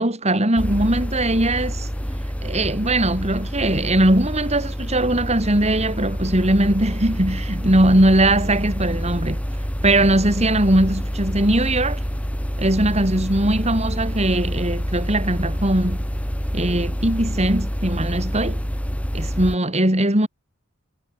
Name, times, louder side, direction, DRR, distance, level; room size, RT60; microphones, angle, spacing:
voice 1, 0.0-1.9 2.4-9.4 9.8-12.0 12.6-16.0 16.5-18.6 19.1-20.3, right 1 dB, 30° right, 5.0 m, -20 dB
sound 1, 0.6-19.6, equal, 5° left, 7.9 m, -27 dB
head